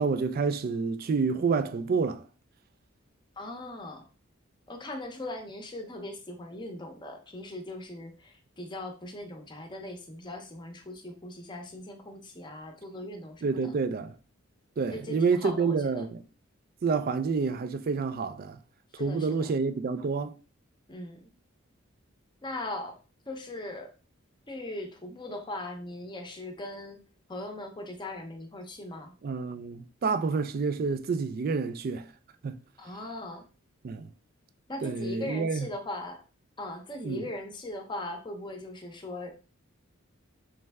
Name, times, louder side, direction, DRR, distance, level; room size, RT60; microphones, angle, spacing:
voice 1, 0.0-2.2 13.4-14.1 14.8-16.1 16.8-18.6 19.0-20.3 29.2-32.0 32.4-32.6 33.8-34.1 34.8-35.7 37.0-37.2, right 4 dB, 45° right, 0.3 m, -28 dB
voice 2, 3.4-4.1 4.7-13.7 14.9-16.1 19.0-19.5 20.9-21.3 22.4-23.0 23.3-23.9 24.5-27.0 27.3-29.1 32.8-33.5 34.7-36.2 36.6-39.4, left 1 dB, 20° left, 0.7 m, -39 dB
3.3 x 3.2 x 3.4 m
head